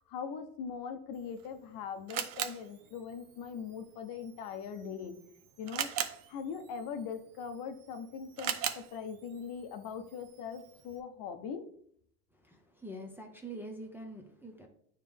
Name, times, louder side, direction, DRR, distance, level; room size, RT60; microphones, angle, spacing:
voice 1, 0.0-5.2 5.6-5.9 6.3-11.7, left 6 dB, 55° left, 8 dB, 0.8 m, -41 dB
Camera, 1.1-11.0, right 10 dB, 50° right, 0.7 m, -42 dB
voice 2, 12.4-14.7, right 1 dB, 5° right, 0 dB, 0.7 m, -45 dB
9.0 x 3.2 x 3.5 m, 0.66 s
supercardioid pair, 120°, 43 cm